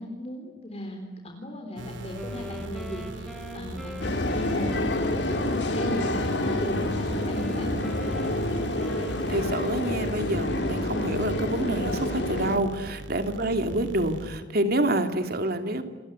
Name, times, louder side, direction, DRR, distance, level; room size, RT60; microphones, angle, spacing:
voice 1, 0.0-8.0 13.4-13.6, left 1 dB, 35° left, 3 dB, 3.7 m, -37 dB
sound 1, 1.8-14.4, right 1 dB, 90° right, 2.3 m, -40 dB
Wind instrument woodwind instrument, 2.1-10.3, left 1 dB, ahead, 2.8 m, -40 dB
sound 2, 4.0-12.6, left 1 dB, 65° left, 2.9 m, -28 dB
voice 2, 9.3-15.8, right 1 dB, 55° right, 7 dB, 2.8 m, -27 dB
28.5 x 21.5 x 9.7 m, 1.3 s
head